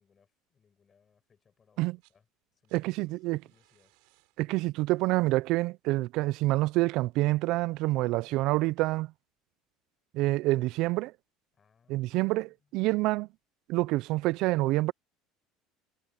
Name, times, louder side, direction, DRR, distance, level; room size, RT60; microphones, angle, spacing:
voice 1, 0.0-2.3 2.5-3.9 11.5-12.7, left 6 dB, 25° left, 6.0 m, -68 dB
sound 1, 1.8-2.2 2.5-7.4 8.6-8.7, right 30 dB, 80° right, 6.9 m, -71 dB
voice 2, 2.7-3.4 4.4-9.1 10.1-11.1 11.9-13.3 13.7-14.9, right 19 dB, 60° right, 0.3 m, -27 dB
cardioid pair, 150°, 0 cm